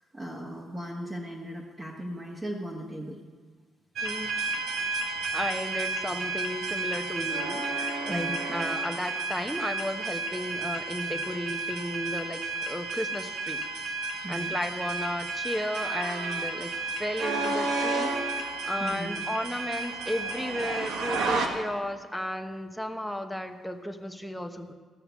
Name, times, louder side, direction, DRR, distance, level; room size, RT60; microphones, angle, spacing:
voice 1, 0.1-3.2 8.1-8.4 14.2-14.5 18.8-19.1, equal, 25° right, -4 dB, 1.7 m, -37 dB
sound 1, 4.0-21.5, right 3 dB, 80° right, 1.5 m, -32 dB
voice 2, 5.3-13.6 14.3-24.7, left 1 dB, 5° left, 6 dB, 1.0 m, -34 dB
15.0 x 5.8 x 8.2 m, 1.5 s
cardioid pair, 90°, 0 cm